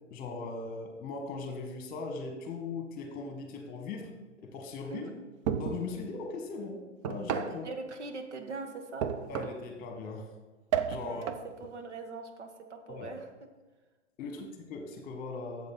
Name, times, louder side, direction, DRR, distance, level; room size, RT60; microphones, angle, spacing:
voice 1, 0.1-4.1 4.4-5.1 5.6-7.7 9.3-10.3 10.9-11.2 12.9-13.1 14.2-15.7, left 4 dB, 25° left, 4 dB, 1.6 m, -39 dB
sound 1, 5.5-5.9 7.0-7.6 9.0-9.7 10.7-11.5, right 8 dB, 30° right, 0.5 m, -32 dB
voice 2, 7.6-9.1 11.0-11.3 11.6-13.3 14.2-14.4, right 3 dB, 70° right, 5 dB, 1.5 m, -42 dB
12.5 x 7.7 x 4.0 m, 1.3 s
figure-of-eight pair, 110°, 36 cm